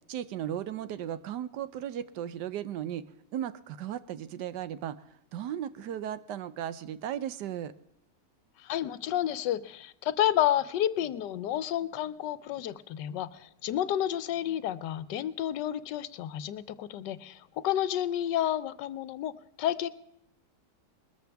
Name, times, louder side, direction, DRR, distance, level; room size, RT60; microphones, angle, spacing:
voice 1, 0.1-3.0 3.3-5.0 5.3-7.7, right 10 dB, 80° right, 14 dB, 1.3 m, -36 dB
voice 2, 8.6-19.9, left 11 dB, 85° left, 15 dB, 1.3 m, -30 dB
21.0 x 14.0 x 3.4 m, 0.79 s
omnidirectional pair, 1.8 m